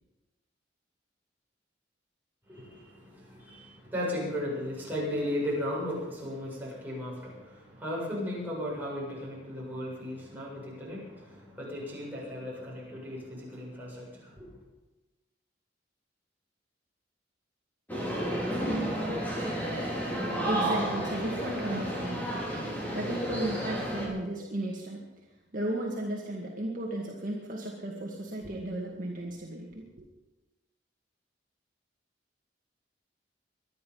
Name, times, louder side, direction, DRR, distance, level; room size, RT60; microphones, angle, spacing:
voice 1, 2.5-14.5, left 1 dB, 10° right, -6 dB, 7.4 m, -36 dB
sound 1, 17.9-24.1, right 1 dB, 10° left, 4.6 m, -31 dB
voice 2, 20.5-22.6 22.9-25.0 25.5-30.0, right 1 dB, 50° right, -2 dB, 2.0 m, -34 dB
24.0 x 10.5 x 5.6 m, 1.1 s
head